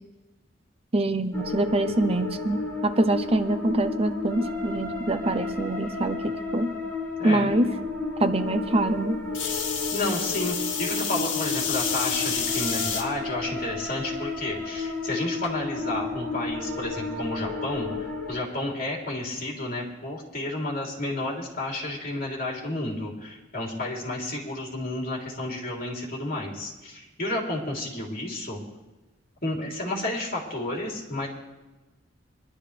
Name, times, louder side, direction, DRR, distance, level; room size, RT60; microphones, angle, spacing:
voice 1, 0.9-6.7 7.2-7.7 8.2-9.2, right 2 dB, 30° right, 8 dB, 0.7 m, -25 dB
sound 1, 1.3-18.3, left 3 dB, 10° left, 2.9 m, -33 dB
voice 2, 7.2-7.5 9.9-28.6 29.4-31.3, left 1 dB, 50° left, -3 dB, 3.4 m, -31 dB
sound 2, 9.3-13.0 13.7-14.2 15.4-15.5, left 6 dB, 80° left, 1.7 m, -29 dB
23.5 x 12.0 x 3.4 m, 1.1 s
head